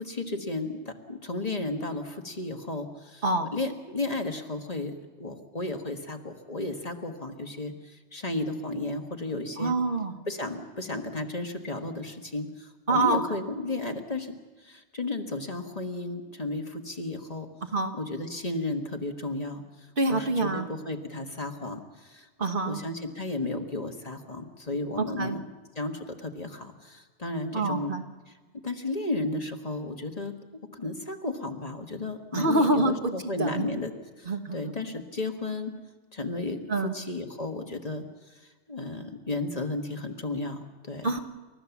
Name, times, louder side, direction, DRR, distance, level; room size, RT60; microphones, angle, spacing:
voice 1, 0.0-3.2 3.5-9.7 10.3-14.3 14.6-17.5 17.9-19.6 20.1-22.3 22.6-25.4 25.7-27.9 28.6-30.3 30.7-33.9 34.2-35.7 36.1-38.0 38.7-41.1, left 2 dB, 35° left, 4 dB, 1.5 m, -33 dB
voice 2, 9.6-10.1 12.9-13.2 17.7-17.9 20.0-20.7 22.4-22.8 25.0-25.3 27.5-28.0 32.3-33.1 33.4-33.7 34.3-34.7 36.7-36.9 41.0-41.2, right 2 dB, 50° right, 6 dB, 1.3 m, -26 dB
29.5 x 14.0 x 7.1 m, 1.3 s
omnidirectional pair, 1.2 m